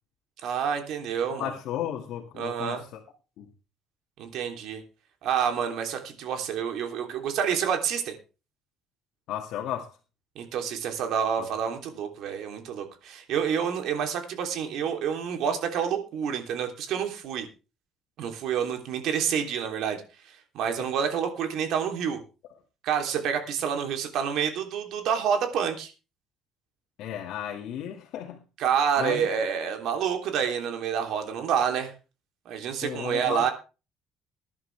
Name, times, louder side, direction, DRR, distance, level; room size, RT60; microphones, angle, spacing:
voice 1, 0.4-1.5 2.4-2.8 4.2-4.8 5.2-8.2 10.3-17.5 18.2-20.0 20.3-22.2 22.8-25.9 28.6-31.9 32.4-33.5, right 7 dB, 70° right, 3.2 m, -28 dB
voice 2, 1.3-3.0 3.4-3.5 9.3-10.0 11.4-11.5 20.8-20.9 27.0-28.4 29.0-29.3 32.8-33.5, left 10 dB, 75° left, 2.1 m, -34 dB
20.0 x 11.0 x 3.4 m
cardioid pair, 150°, 0 cm